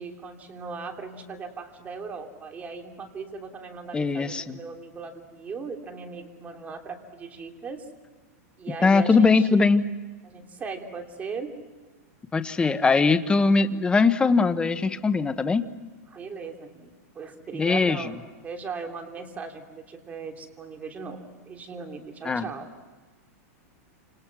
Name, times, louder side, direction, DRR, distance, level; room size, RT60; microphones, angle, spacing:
voice 1, 0.0-7.8 8.6-9.7 10.2-11.5 16.1-22.7, right 4 dB, 20° right, 3 dB, 3.1 m, -38 dB
voice 2, 3.9-4.6 8.8-9.9 12.3-15.6 17.6-18.1 22.2-22.5, left 4 dB, 10° left, 11 dB, 1.0 m, -21 dB
29.5 x 27.5 x 6.1 m, 1.3 s
supercardioid pair, 145°, 8 cm